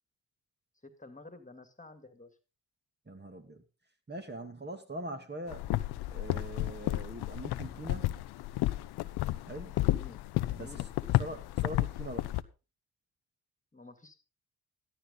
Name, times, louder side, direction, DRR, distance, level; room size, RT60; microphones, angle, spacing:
voice 1, 0.8-2.4 9.7-11.5 13.7-14.1, left 2 dB, 20° left, 9 dB, 2.2 m, -52 dB
voice 2, 3.1-3.6 4.1-5.6 6.1-8.1 9.5-9.8 10.6-10.8 11.2-12.3, right 1 dB, 25° right, 5 dB, 2.4 m, -42 dB
sound 1, 5.5-12.4, left 16 dB, 75° left, 0.7 m, -32 dB
13.0 x 11.5 x 4.0 m, 0.31 s
supercardioid pair, 50°, 39 cm